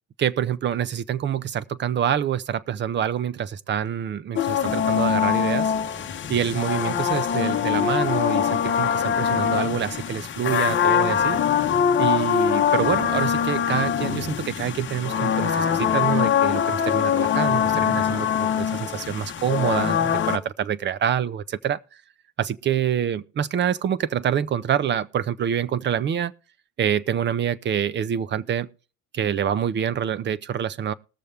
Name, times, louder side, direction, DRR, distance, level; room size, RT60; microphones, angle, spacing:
voice 1, 0.2-5.7 6.3-11.4 12.0-22.0 22.4-26.3 26.8-28.7 29.1-30.9, right 9 dB, 30° right, 0.5 m, -26 dB
sound 1, 4.4-20.4, left 8 dB, 30° left, 1.0 m, -23 dB
20.5 x 6.9 x 3.3 m
cardioid pair, 155°, 38 cm